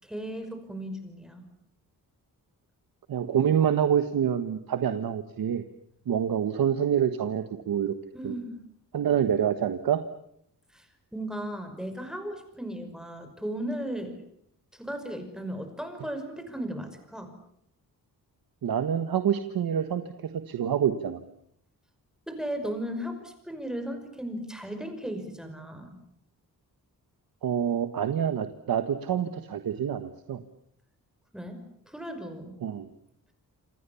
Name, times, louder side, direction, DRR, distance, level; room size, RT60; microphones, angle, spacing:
voice 1, 0.0-1.4 8.1-8.6 10.7-14.2 14.7-17.3 22.3-26.0 31.3-31.6 31.9-32.6, equal, ahead, 7 dB, 5.6 m, -36 dB
voice 2, 3.1-5.6 6.1-7.9 8.2-8.4 8.9-10.0 18.6-21.2 27.4-30.4 32.6-32.9, right 9 dB, 75° right, 9 dB, 1.6 m, -27 dB
29.0 x 27.0 x 7.2 m, 0.71 s
wide cardioid pair, 135°, 36 cm